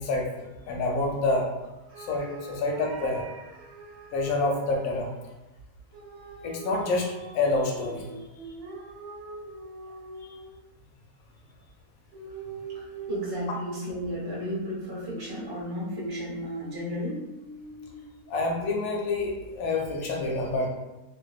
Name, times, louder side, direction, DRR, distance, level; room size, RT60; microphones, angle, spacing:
voice 1, 0.0-1.5 2.0-3.3 4.1-5.1 6.4-8.1 10.2-10.3 18.3-20.7, left 2 dB, 70° left, 0 dB, 1.0 m, -28 dB
sound 1, 1.9-4.9 5.9-10.7 12.1-18.2, right 3 dB, 75° right, 1.0 m, -42 dB
voice 2, 12.7-17.2, left 1 dB, 25° right, -7 dB, 0.5 m, -34 dB
2.6 x 2.2 x 2.3 m, 1.0 s
omnidirectional pair, 1.7 m